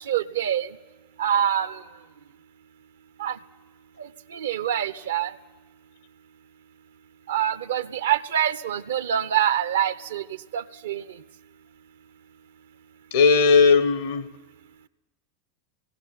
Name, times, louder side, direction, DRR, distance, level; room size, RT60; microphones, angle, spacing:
voice 1, 0.1-0.7 1.2-1.8 3.2-3.3 4.4-5.3 7.3-10.2 10.5-11.0, right 10 dB, 70° right, 14 dB, 0.7 m, -25 dB
voice 2, 13.1-14.3, left 5 dB, 70° left, 14 dB, 1.1 m, -17 dB
19.0 x 16.5 x 8.9 m, 1.2 s
figure-of-eight pair, 80°, 0 cm